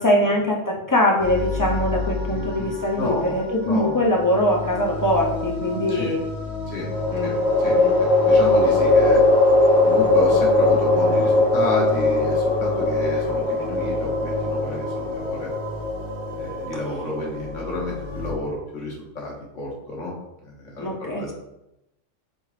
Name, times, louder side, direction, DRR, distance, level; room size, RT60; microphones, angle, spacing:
voice 1, 0.0-6.2 7.1-7.4 7.7-8.0 8.2-8.4 20.8-21.3, left 1 dB, 30° left, -2 dB, 0.4 m, -22 dB
sound 1, 1.2-18.3, left 1 dB, 60° left, 1.3 m, -32 dB
voice 2, 2.3-3.4 3.6-4.0 5.9-6.1 6.7-6.9 7.2-7.3 7.6-9.2 9.8-15.5 16.3-20.1 20.4-21.3, left 2 dB, 85° left, -2 dB, 1.4 m, -30 dB
sound 2, 3.8-4.6 6.9-18.2, left 2 dB, 30° right, 1.5 m, -20 dB
3.7 x 3.6 x 3.2 m, 0.89 s
omnidirectional pair, 1.2 m